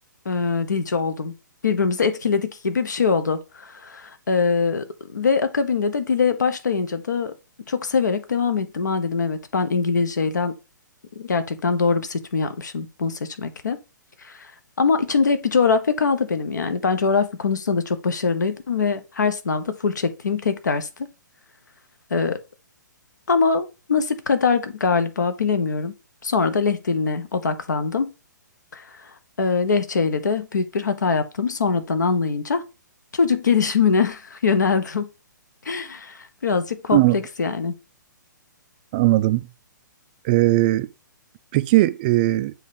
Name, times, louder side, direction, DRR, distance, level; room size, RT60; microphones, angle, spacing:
voice 1, 0.2-1.3 1.6-7.3 7.7-10.5 11.2-13.8 14.2-14.5 14.8-20.9 22.1-22.4 23.3-25.9 26.2-28.1 28.7-28.8 29.4-32.6 33.1-35.1 35.6-37.7, left 5 dB, 65° left, 1.0 m, -23 dB
voice 2, 38.9-39.5 40.2-40.9 41.5-42.5, right 17 dB, 25° right, 0.3 m, -18 dB
7.6 x 2.9 x 5.0 m
figure-of-eight pair, 125°, 10 cm